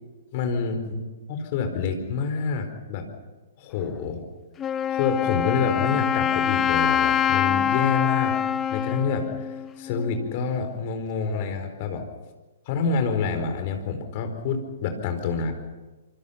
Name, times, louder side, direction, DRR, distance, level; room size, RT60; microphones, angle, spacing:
voice 1, 0.3-1.0 1.3-3.1 3.6-4.2 4.9-12.0 12.7-15.5, left 5 dB, 40° left, 7 dB, 4.4 m, -27 dB
Wind instrument woodwind instrument, 4.6-10.3, left 9 dB, 20° left, 0.7 m, -25 dB
26.5 x 25.0 x 5.8 m, 1.2 s
figure-of-eight pair, 115°, 0 cm